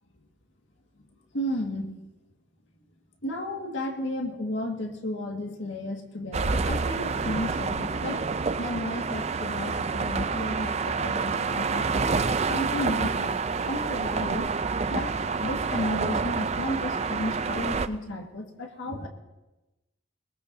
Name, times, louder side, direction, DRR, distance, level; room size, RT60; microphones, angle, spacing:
voice 1, 1.3-2.0 3.2-14.5 14.9-19.1, left 1 dB, 65° left, 2 dB, 1.9 m, -33 dB
sound 1, 6.3-17.9, right 4 dB, 30° right, 0.4 m, -28 dB
21.0 x 20.5 x 2.7 m, 1.0 s
head